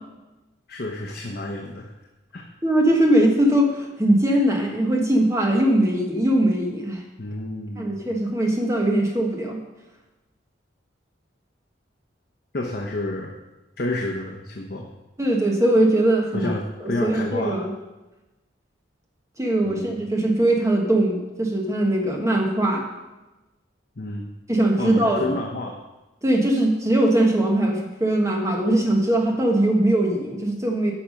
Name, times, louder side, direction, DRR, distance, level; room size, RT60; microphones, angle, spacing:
voice 1, 0.7-1.9 2.3-2.4 7.2-8.1 12.5-13.3 13.8-14.9 16.3-17.6 19.6-19.9 24.0-24.3 24.8-25.8, left 2 dB, 50° left, 0 dB, 0.9 m, -30 dB
voice 2, 2.6-7.0 7.8-9.6 15.2-16.5 16.8-17.7 19.4-22.8 24.5-25.2 26.2-30.9, right 1 dB, 15° right, 0 dB, 1.4 m, -21 dB
10.0 x 6.0 x 5.2 m, 1.1 s
head